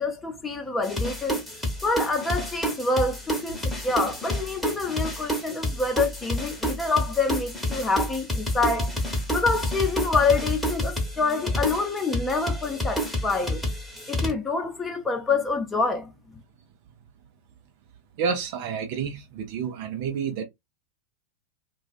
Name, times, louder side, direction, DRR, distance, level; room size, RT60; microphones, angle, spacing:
voice 1, 0.0-1.4 1.8-8.9 9.3-13.6 14.1-16.1, left 3 dB, 15° left, 0.7 m, -26 dB
sound 1, 0.8-14.3, equal, ahead, 1.1 m, -29 dB
voice 2, 18.2-20.4, right 6 dB, 50° right, 0.6 m, -29 dB
2.3 x 2.3 x 2.4 m
figure-of-eight pair, 90°, 0 cm